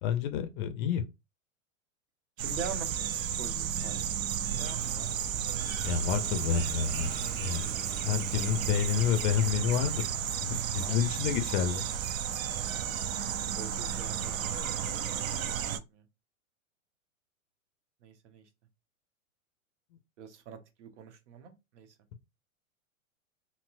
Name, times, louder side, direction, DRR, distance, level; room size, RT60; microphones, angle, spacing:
voice 1, 0.0-1.0 5.8-7.1 7.4-7.6 8.0-10.0 10.4-11.8, left 8 dB, 35° left, 0.5 m, -29 dB
voice 2, 2.4-5.3 10.7-11.1 13.2-15.0 15.4-16.1 18.0-18.5 20.2-21.9, right 6 dB, 60° right, 1.0 m, -45 dB
sound 1, 2.4-15.8, right 9 dB, 75° right, 0.6 m, -33 dB
Engine starting, 4.7-10.1, right 4 dB, 20° right, 0.7 m, -48 dB
4.1 x 2.0 x 2.5 m
hypercardioid pair, 110°, 41 cm